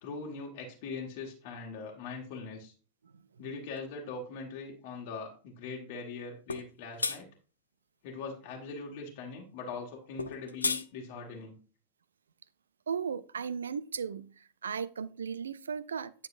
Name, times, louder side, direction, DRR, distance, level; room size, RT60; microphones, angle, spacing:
voice 1, 0.0-2.7 3.4-7.3 8.0-11.6, left 4 dB, 50° left, 1.4 m, -41 dB
sound 1, 6.5-6.7 7.0-7.2 10.2-10.8, left 4 dB, 80° left, 0.5 m, -31 dB
voice 2, 12.9-16.1, right 6 dB, 70° right, 0.4 m, -36 dB
9.5 x 6.4 x 2.5 m
figure-of-eight pair, 90°, 0 cm